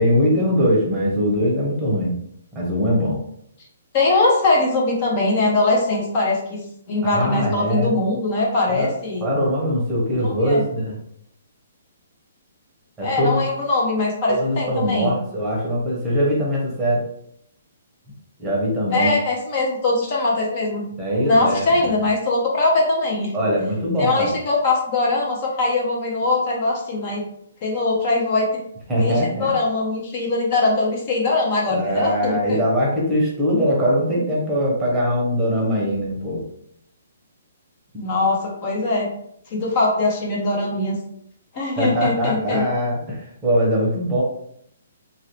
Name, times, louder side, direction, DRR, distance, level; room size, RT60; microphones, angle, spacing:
voice 1, 0.0-2.1 2.5-3.2 7.0-8.0 8.7-8.9 9.2-11.0 13.0-13.4 14.3-17.0 18.4-19.1 21.0-22.0 23.3-24.3 28.9-29.5 31.7-36.4 41.8-44.2, equal, 10° right, -5 dB, 0.9 m, -21 dB
voice 2, 3.9-6.6 6.9-9.2 10.2-10.6 13.0-15.1 18.9-20.9 21.2-23.3 24.0-27.2 27.6-28.5 29.0-32.6 38.0-39.1 39.5-41.0 41.5-42.7, left 2 dB, 35° left, -2 dB, 0.8 m, -21 dB
2.9 x 2.7 x 3.1 m, 0.71 s
hypercardioid pair, 160°, 0 cm